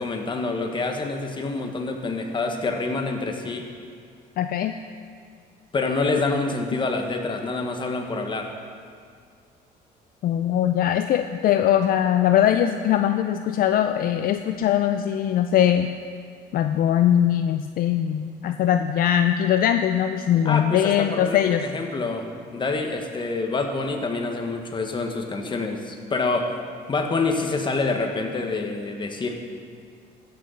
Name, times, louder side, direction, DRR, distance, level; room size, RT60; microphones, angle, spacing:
voice 1, 0.0-3.7 5.7-8.5 20.4-22.3 22.5-26.5 26.9-29.4, left 3 dB, 30° left, 3 dB, 1.4 m, -27 dB
voice 2, 4.4-4.7 10.2-15.9 16.5-21.6, left 10 dB, 60° left, 8 dB, 0.5 m, -21 dB
15.0 x 6.5 x 5.6 m, 2.2 s
cardioid pair, 110°, 17 cm